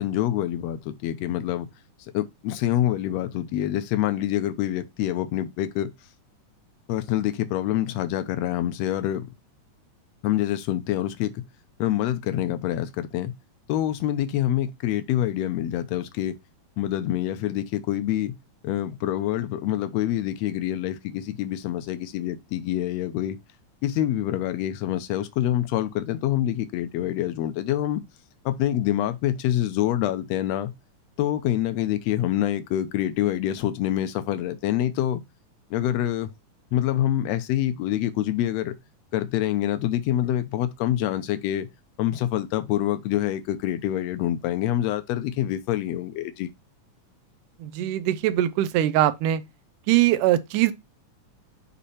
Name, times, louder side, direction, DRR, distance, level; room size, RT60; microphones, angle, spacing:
voice 1, 0.0-1.7 2.0-5.9 6.9-9.3 10.2-11.4 11.8-13.3 13.7-16.3 16.8-18.3 18.6-23.4 23.8-28.0 28.5-30.7 31.2-35.2 35.7-36.3 36.7-38.8 39.1-41.7 42.0-46.5, left 12 dB, 70° left, 1.8 m, -26 dB
voice 2, 47.6-49.4 49.9-50.7, right 13 dB, 85° right, 2.2 m, -22 dB
8.3 x 3.0 x 4.2 m
omnidirectional pair, 3.6 m